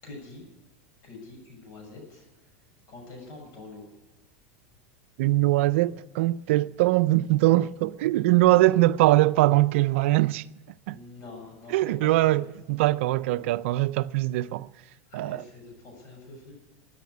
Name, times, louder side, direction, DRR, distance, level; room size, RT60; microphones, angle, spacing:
voice 1, 0.0-0.5 1.0-2.3 2.9-3.9 8.5-8.7 10.9-12.5 15.1-16.5, left 3 dB, 50° left, 7.1 m, -45 dB
voice 2, 5.2-10.4 10.9-11.0 11.7-12.4 12.7-14.7 15.1-15.4, right 17 dB, 70° right, 0.5 m, -22 dB
13.5 x 10.0 x 9.6 m
supercardioid pair, 115°, 7 cm